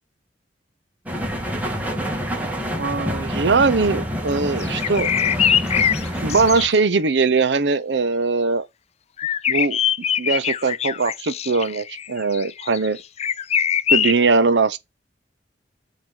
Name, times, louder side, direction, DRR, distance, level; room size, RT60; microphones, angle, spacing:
sound 1, 1.1-6.7, equal, 10° right, 1.4 m, -27 dB
voice 1, 2.8-5.1 6.2-8.7 9.5-9.8 10.2-13.0 13.9-14.8, right 4 dB, 70° right, 0.7 m, -20 dB
sound 2, 4.6-6.7 9.2-14.1, left 8 dB, 35° left, 0.3 m, -22 dB
8.9 x 3.1 x 5.5 m
head